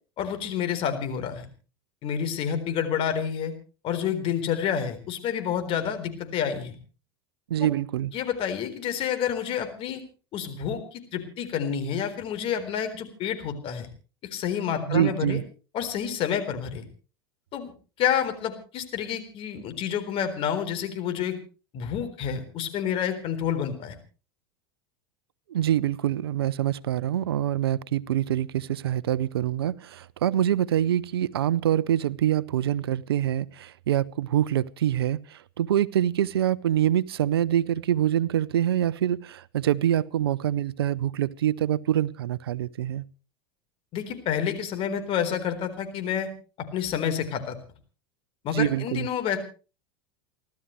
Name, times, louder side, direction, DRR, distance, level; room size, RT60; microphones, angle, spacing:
voice 1, 0.2-1.5 2.0-3.5 3.8-6.8 7.6-7.7 8.1-10.0 10.3-13.9 14.3-15.4 15.7-16.9 17.5-17.7 18.0-21.4 21.7-24.0 43.9-46.3 46.6-47.6 48.4-49.4, left 8 dB, 45° left, 4.0 m, -29 dB
voice 2, 7.5-8.1 14.9-15.4 25.5-43.0 48.5-49.1, right 11 dB, 80° right, 0.7 m, -25 dB
29.5 x 13.0 x 3.2 m
hypercardioid pair, 90°, 13 cm